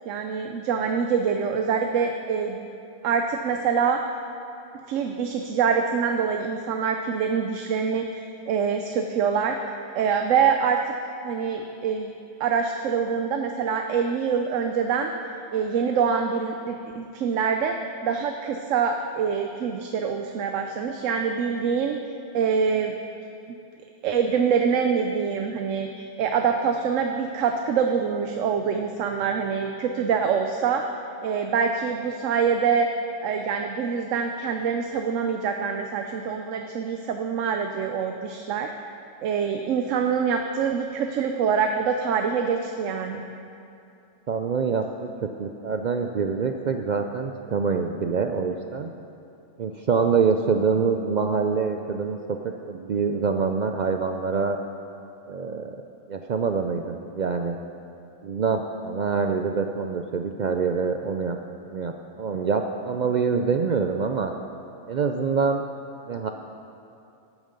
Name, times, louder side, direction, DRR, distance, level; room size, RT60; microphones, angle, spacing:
voice 1, 0.1-2.6 3.0-4.0 4.9-9.6 9.9-10.9 11.2-12.1 12.4-15.1 15.5-17.8 18.0-22.0 22.3-22.9 24.0-30.9 31.2-32.9 33.2-38.7 39.2-43.2, right 6 dB, 85° right, 5 dB, 1.0 m, -25 dB
voice 2, 44.3-45.1 45.4-48.9 49.6-52.2 52.7-54.6 55.3-55.8 56.1-57.6 58.2-61.4 61.7-64.3 64.9-65.6 66.0-66.3, right 5 dB, 60° right, 5 dB, 0.4 m, -25 dB
9.4 x 8.9 x 6.6 m, 2.7 s
omnidirectional pair, 1.3 m